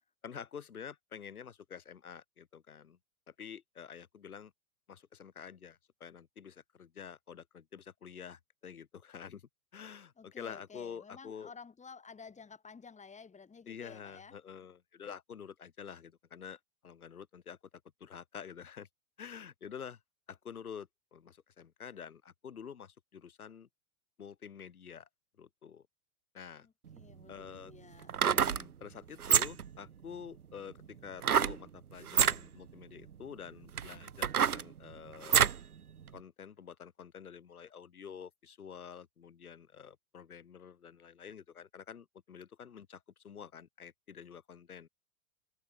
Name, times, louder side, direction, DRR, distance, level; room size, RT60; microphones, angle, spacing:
voice 1, 0.2-3.0 3.3-4.5 4.9-9.4 9.7-11.5 13.7-17.6 18.0-18.9 19.2-20.0 20.3-23.7 24.2-25.1 25.4-25.8 26.3-26.7 27.3-27.7 28.3-35.4 36.1-44.9, left 7 dB, 85° left, 2.8 m, -48 dB
voice 2, 10.2-14.4 26.6-28.2, left 5 dB, 15° left, 7.9 m, -53 dB
sound 1, 26.9-27.0 28.0-28.6 29.2-29.7 31.2-31.6 32.1-32.4 33.1-33.2 33.7-35.6 36.1-36.2, right 8 dB, 90° right, 1.6 m, -27 dB
hypercardioid pair, 105°, 43 cm